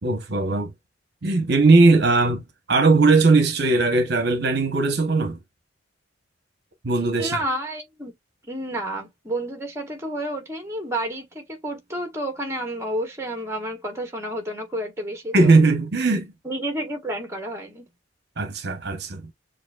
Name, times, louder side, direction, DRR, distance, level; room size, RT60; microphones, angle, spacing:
voice 1, 0.0-0.7 1.2-2.4 2.7-5.4 6.8-7.4 15.3-16.3 18.4-19.2, right 3 dB, 55° right, 0.9 m, -19 dB
voice 2, 7.1-8.1 8.5-15.6 16.4-17.9, right 1 dB, 15° right, 1.3 m, -30 dB
7.0 x 2.6 x 2.3 m
head